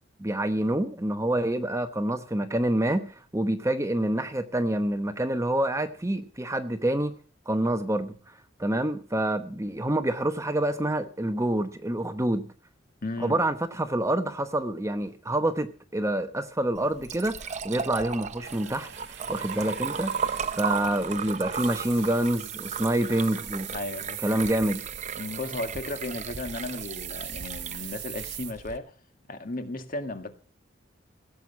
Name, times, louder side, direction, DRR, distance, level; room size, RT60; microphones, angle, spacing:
voice 1, 0.2-3.1 3.3-7.1 7.5-8.1 8.6-12.5 13.2-18.9 19.3-20.2 20.6-23.7 24.2-24.8, right 1 dB, 15° right, 9 dB, 1.0 m, -27 dB
voice 2, 13.0-13.4 23.7-24.4 25.2-28.9 29.3-30.3, left 2 dB, 45° left, 7 dB, 1.9 m, -35 dB
Liquid, 16.8-28.8, right 6 dB, 40° right, 0.7 m, -35 dB
sound 1, 18.4-28.5, right 12 dB, 65° right, 1.6 m, -41 dB
16.5 x 8.0 x 7.3 m, 0.41 s
head